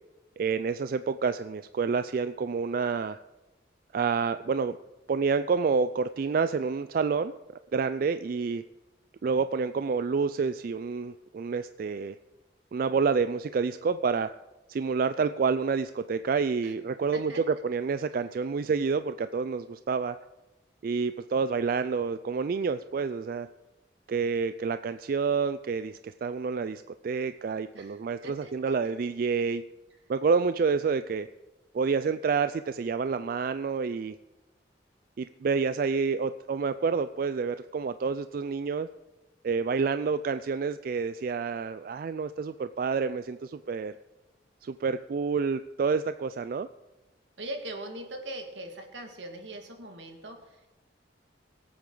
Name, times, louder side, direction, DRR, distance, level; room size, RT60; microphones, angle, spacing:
voice 1, 0.4-3.2 3.9-4.8 5.1-7.3 7.7-8.6 9.2-12.2 12.7-14.3 14.7-17.3 17.6-20.2 20.8-23.5 24.1-29.6 30.1-31.3 31.7-34.2 35.2-38.9 39.4-44.0 44.6-46.7, right 5 dB, 50° right, 12 dB, 0.3 m, -28 dB
voice 2, 27.7-28.7 47.4-50.7, right 1 dB, 85° right, 3 dB, 2.0 m, -41 dB
22.0 x 8.7 x 3.9 m, 1.1 s
head